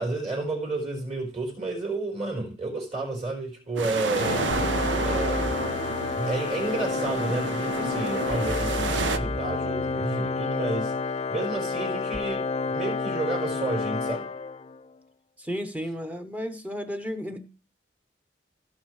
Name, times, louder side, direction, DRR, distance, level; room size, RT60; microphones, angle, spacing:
voice 1, 0.0-4.5 5.0-5.5 6.0-10.9 11.3-14.3, right 2 dB, 40° right, 4.4 m, -31 dB
sound 1, 3.8-9.2, right 4 dB, 85° right, 0.7 m, -30 dB
Organ, 4.1-14.9, left 4 dB, 35° left, 0.4 m, -30 dB
sound 2, 4.5-6.5 8.3-10.3 12.1-12.2, equal, 55° right, 1.9 m, -33 dB
voice 2, 15.4-17.4, equal, 10° right, 0.9 m, -33 dB
16.5 x 6.4 x 3.2 m
head